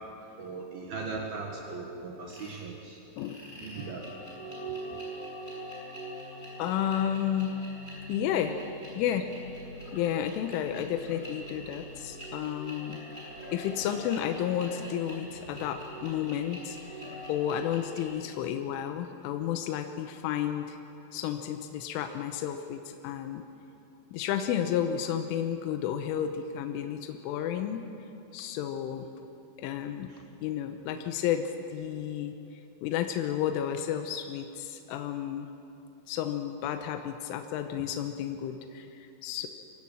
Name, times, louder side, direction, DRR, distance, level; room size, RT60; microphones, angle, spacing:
voice 1, 0.4-3.0 3.6-4.0 15.5-15.6, right 4 dB, 60° right, 0 dB, 3.1 m, -38 dB
sound 1, 2.3-2.6 3.1-18.0, equal, 10° left, 7.2 m, -43 dB
voice 2, 6.6-7.6 8.1-8.6 9.0-9.3 9.9-13.0 13.5-17.0 17.3-20.8 21.1-23.4 24.1-27.9 28.3-29.1 29.6-30.1 30.4-32.3 32.8-35.5 36.1-39.5, left 9 dB, 85° left, 6 dB, 3.4 m, -32 dB
24.0 x 16.0 x 8.8 m, 2.7 s
omnidirectional pair, 5.7 m